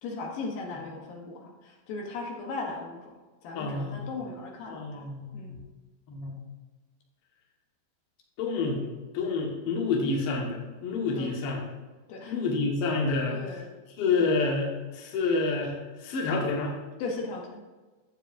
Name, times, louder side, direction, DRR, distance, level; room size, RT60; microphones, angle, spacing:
voice 1, 0.0-3.2 3.4-5.6 11.1-11.3 12.1-12.4 13.3-13.7 17.0-17.7, left 3 dB, 70° left, 0 dB, 2.3 m, -37 dB
voice 2, 3.5-4.1 4.7-5.7 6.1-6.3 8.4-11.6 12.3-13.4 14.0-16.7, left 3 dB, 85° left, -1 dB, 1.3 m, -28 dB
14.5 x 7.2 x 2.6 m, 1.3 s
omnidirectional pair, 5.4 m